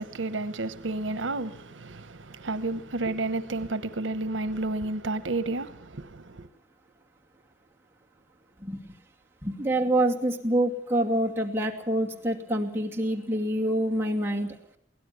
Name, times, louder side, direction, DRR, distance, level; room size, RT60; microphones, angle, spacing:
voice 1, 0.0-6.5, right 2 dB, 85° right, 1.0 m, -31 dB
voice 2, 9.4-14.6, right 1 dB, 15° right, 2.6 m, -26 dB
23.0 x 17.0 x 6.9 m
head